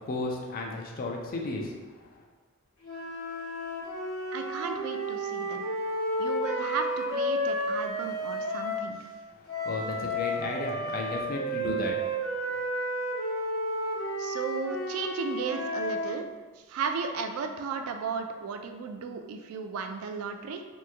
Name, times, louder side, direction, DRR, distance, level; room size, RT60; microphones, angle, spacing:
voice 1, 0.0-1.8 9.4-12.7, left 2 dB, 45° left, 0 dB, 0.4 m, -34 dB
sound 1, 2.8-8.9 9.5-16.1, equal, 65° left, 1.1 m, -32 dB
voice 2, 4.3-5.7 6.2-9.0 14.2-16.3 16.6-20.6, right 5 dB, 80° right, 6 dB, 0.3 m, -35 dB
2.9 x 2.2 x 3.4 m, 1.3 s
head